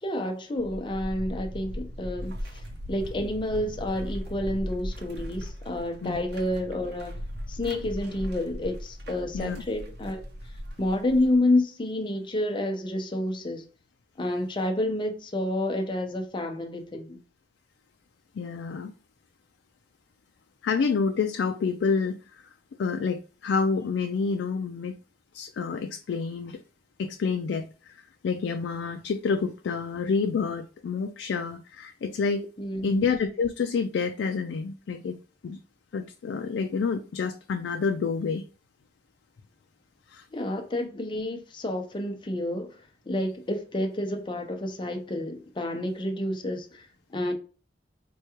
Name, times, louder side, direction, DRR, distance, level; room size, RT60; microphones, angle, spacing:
voice 1, 0.0-2.6 2.9-7.1 7.5-10.2 10.8-13.7 14.2-17.2 32.6-33.0 40.3-42.8 43.1-47.3, left 1 dB, 25° left, 0.6 m, -29 dB
sound 1, 0.6-11.4, equal, 65° right, 0.7 m, -38 dB
voice 2, 18.4-18.9 20.6-22.4 22.8-25.0 25.3-26.6 27.0-32.5 32.8-35.6 35.9-38.4 40.1-40.2, left 5 dB, 90° left, 0.3 m, -28 dB
4.5 x 2.3 x 2.9 m
head